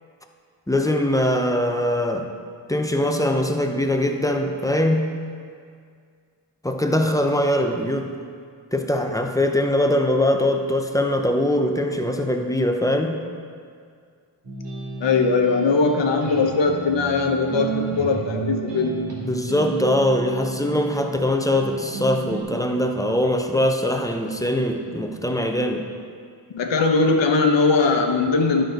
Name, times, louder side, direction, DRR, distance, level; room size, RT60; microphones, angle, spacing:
voice 1, 0.7-2.3 2.7-5.2 6.6-8.1 8.7-13.2 19.2-25.9, left 1 dB, 10° left, 4 dB, 0.5 m, -22 dB
sound 1, 14.4-22.4, right 3 dB, 70° right, 2.2 m, -32 dB
voice 2, 15.0-19.0 26.5-28.6, left 4 dB, 75° left, 3 dB, 0.9 m, -20 dB
11.0 x 6.3 x 3.9 m, 2.1 s
wide cardioid pair, 125°, 45 cm